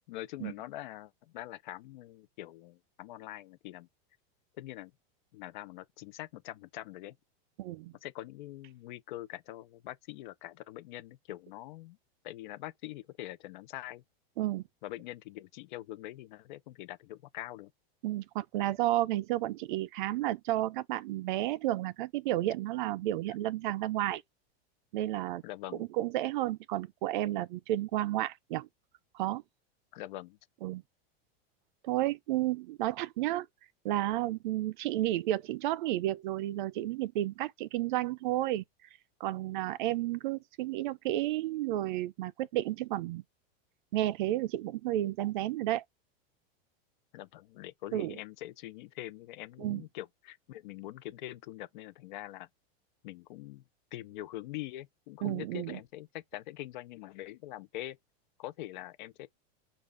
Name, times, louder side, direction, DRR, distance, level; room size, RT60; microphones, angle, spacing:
voice 1, 0.0-3.9 4.6-4.9 5.3-7.2 8.0-12.0 12.2-14.0 14.8-17.7 25.4-25.9 29.9-30.4 47.1-52.5 53.0-53.6 53.9-58.0 58.4-59.3, left 15 dB, 50° left, 0.5 m, -44 dB
voice 2, 7.6-7.9 14.4-14.6 18.0-24.2 24.9-25.4 25.8-28.7 29.1-29.4 30.6-30.8 31.8-33.5 33.8-38.6 39.2-43.2 43.9-45.8 47.9-48.2 49.6-49.8 55.2-55.8, right 15 dB, 55° right, 0.4 m, -32 dB
5.2 x 2.4 x 3.4 m
supercardioid pair, 165°, 31 cm